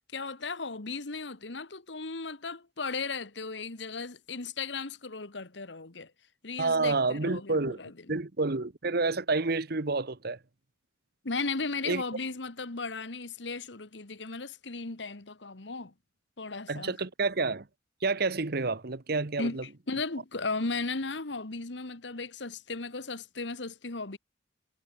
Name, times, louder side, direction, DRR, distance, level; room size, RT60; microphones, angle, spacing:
voice 1, 0.0-6.1 6.4-8.2 11.2-15.9 16.4-16.9 19.4-24.2, left 3 dB, 75° left, 1.7 m, -36 dB
voice 2, 6.6-7.8 8.1-10.4 11.8-12.0 16.7-17.7 18.0-19.6, right 3 dB, 60° right, 1.2 m, -29 dB
head